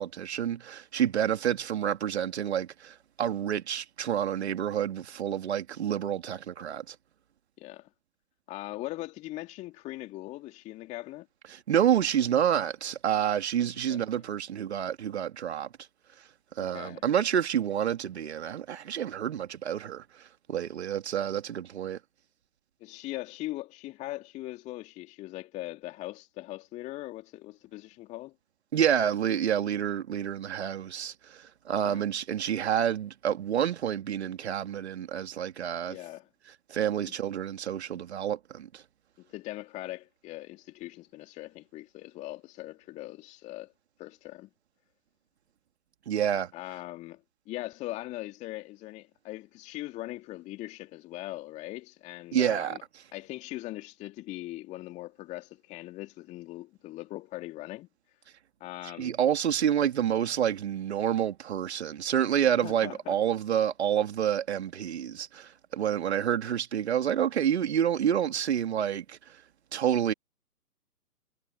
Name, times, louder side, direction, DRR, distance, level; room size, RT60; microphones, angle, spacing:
voice 1, 0.0-6.9 11.5-15.7 16.6-20.0 20.5-22.0 28.7-36.0 36.7-38.8 46.1-46.5 52.3-52.8 59.0-69.3 69.7-70.1, right 9 dB, 45° right, 2.8 m, -28 dB
voice 2, 7.6-7.9 8.5-11.3 13.9-14.2 16.6-17.0 22.8-28.3 31.8-32.1 35.9-36.3 37.1-37.2 39.2-43.7 44.0-44.5 46.5-52.8 53.1-58.2 58.6-59.1 62.6-63.2, left 17 dB, 15° left, 2.0 m, -40 dB
figure-of-eight pair, 135°, 47 cm